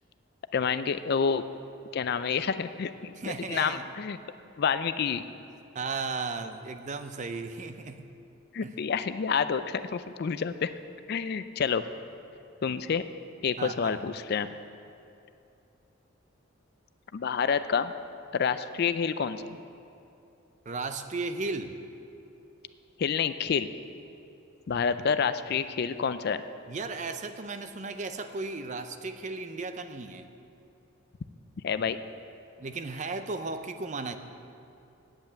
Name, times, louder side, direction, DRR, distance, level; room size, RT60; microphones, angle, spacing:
voice 1, 0.5-1.4 1.9-4.2 4.6-5.2 8.5-10.7 11.1-11.8 12.6-13.0 13.4-14.5 17.1-17.9 18.3-19.6 23.0-23.7 24.7-26.4 31.6-32.0, left 6 dB, 50° left, 12 dB, 0.4 m, -28 dB
voice 2, 3.2-3.8 5.7-8.0 8.6-8.7 13.6-14.0 20.7-21.7 26.7-30.3 32.6-34.2, right 3 dB, 35° right, 9 dB, 0.5 m, -35 dB
8.9 x 8.1 x 8.5 m, 2.8 s
head